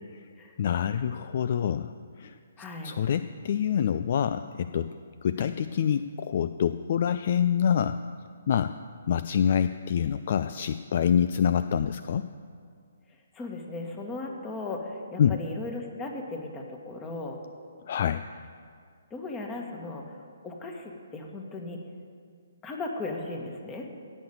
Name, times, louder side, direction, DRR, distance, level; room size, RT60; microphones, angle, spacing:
voice 1, 0.6-2.4 2.8-4.9 5.2-8.0 8.5-8.7 9.1-12.3 15.2-15.4 17.9-18.2, left 8 dB, 50° left, 11 dB, 0.3 m, -26 dB
voice 2, 2.6-3.0 5.4-5.5 13.3-17.4 19.1-20.0 20.4-21.8 22.6-23.9, left 2 dB, 15° left, 2 dB, 1.7 m, -36 dB
17.5 x 6.4 x 7.1 m, 2.1 s
figure-of-eight pair, 135°, 0 cm